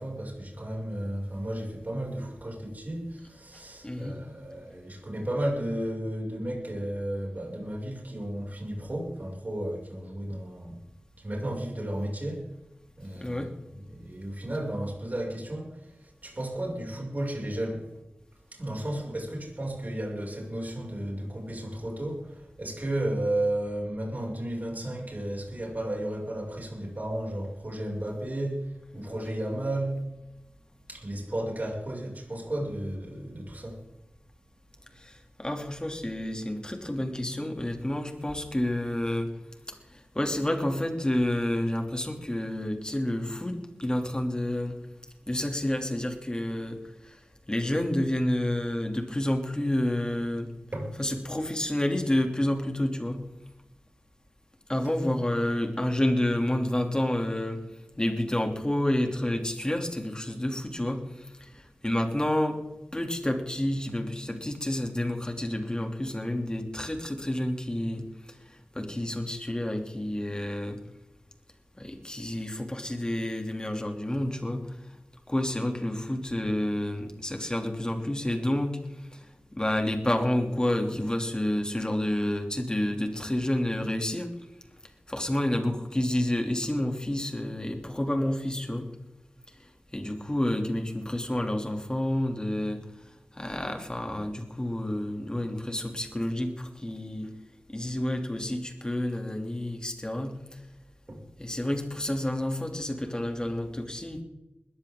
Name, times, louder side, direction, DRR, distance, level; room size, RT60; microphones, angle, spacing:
voice 1, 0.0-10.8 11.2-12.5 13.0-13.5 13.8-17.9 18.5-30.0 30.9-33.8 50.7-50.9 55.1-55.2 101.1-101.2, right 1 dB, 45° right, -1 dB, 6.4 m, -33 dB
voice 2, 3.8-4.2 13.2-13.5 35.0-35.1 35.4-39.3 39.9-44.8 45.3-46.8 47.1-47.2 47.5-50.5 51.0-53.2 54.7-57.6 58.0-61.0 61.4-61.5 61.8-62.6 62.9-68.0 68.7-70.8 71.8-74.6 75.3-78.8 79.1-79.2 79.5-84.3 85.1-88.9 89.9-92.8 93.3-97.3 97.7-100.3 101.4-104.2, left 1 dB, 20° left, 4 dB, 2.8 m, -29 dB
20.5 x 14.5 x 3.8 m, 0.96 s
wide cardioid pair, 70°, 4 cm